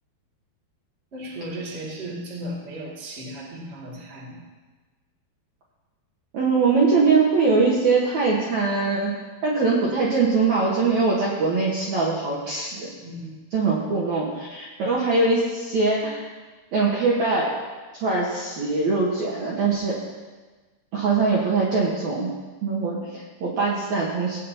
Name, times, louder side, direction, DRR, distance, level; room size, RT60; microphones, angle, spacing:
voice 1, 1.1-4.4 12.9-13.4, right 1 dB, 25° right, -5 dB, 1.4 m, -35 dB
voice 2, 6.3-9.1 9.4-12.9 13.5-16.3 16.7-17.5 18.0-20.0 20.9-22.3 22.6-24.4, right 4 dB, 65° right, -5 dB, 2.0 m, -22 dB
17.0 x 8.5 x 2.8 m, 1.3 s
omnidirectional pair, 4.6 m